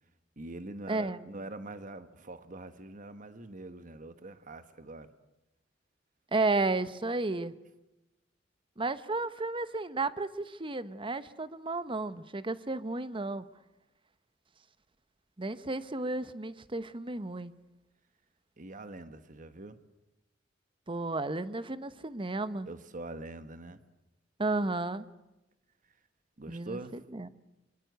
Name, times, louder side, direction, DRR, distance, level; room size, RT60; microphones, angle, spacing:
voice 1, 0.4-5.1 18.6-19.8 22.7-23.8 26.4-27.0, right 2 dB, 45° right, 1.4 m, -44 dB
voice 2, 0.9-1.2 6.3-7.5 8.8-13.4 15.4-17.5 20.9-22.7 24.4-25.1 26.5-26.8 27.1-27.3, right 3 dB, 25° right, 1.0 m, -33 dB
25.5 x 24.5 x 8.1 m
head